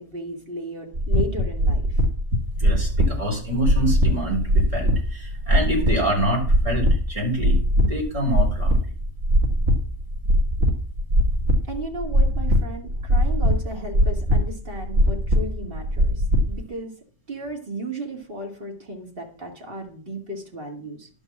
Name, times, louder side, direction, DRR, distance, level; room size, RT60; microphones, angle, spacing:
voice 1, 0.0-2.0 11.7-17.0 17.3-21.1, right 1 dB, 45° right, 1 dB, 2.6 m, -35 dB
sound 1, 0.9-16.6, equal, 60° right, 1.9 m, -21 dB
voice 2, 2.6-8.7, equal, 25° right, -2 dB, 4.3 m, -26 dB
11.5 x 5.5 x 7.3 m, 0.41 s
omnidirectional pair, 1.3 m